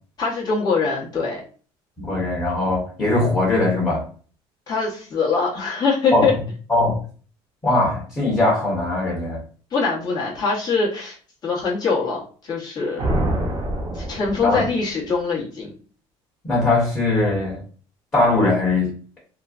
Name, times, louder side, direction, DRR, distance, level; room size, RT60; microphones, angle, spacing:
voice 1, 0.2-1.4 4.7-6.3 9.7-11.2 11.4-13.0 13.9-15.7, left 4 dB, 35° left, -4 dB, 1.3 m, -23 dB
voice 2, 2.0-4.0 6.1-6.4 6.7-7.0 7.6-9.4 14.4-14.7 16.5-17.6 18.1-18.9, left 2 dB, 15° left, -8 dB, 1.3 m, -20 dB
sound 1, 13.0-14.9, right 1 dB, 35° right, 0.8 m, -25 dB
3.1 x 2.2 x 2.5 m, 0.41 s
cardioid pair, 115°, 12 cm